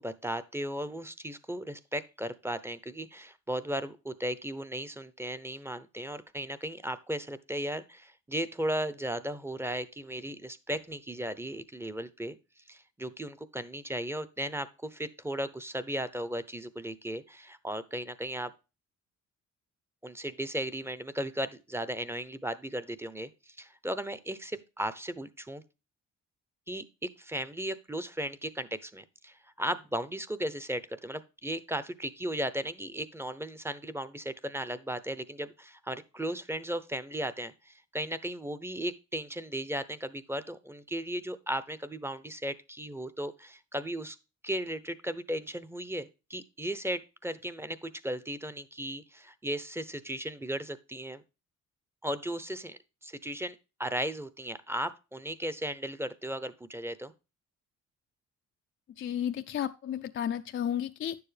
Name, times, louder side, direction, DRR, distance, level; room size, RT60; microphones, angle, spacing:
voice 1, 0.0-12.4 12.7-18.5 20.0-25.6 26.7-26.8 27.2-44.2 44.4-51.2 52.0-57.1, right 1 dB, 10° right, 0.7 m, -36 dB
voice 2, 59.0-61.2, left 9 dB, 40° left, 0.4 m, -32 dB
9.8 x 7.0 x 3.3 m
cardioid pair, 90°, 30 cm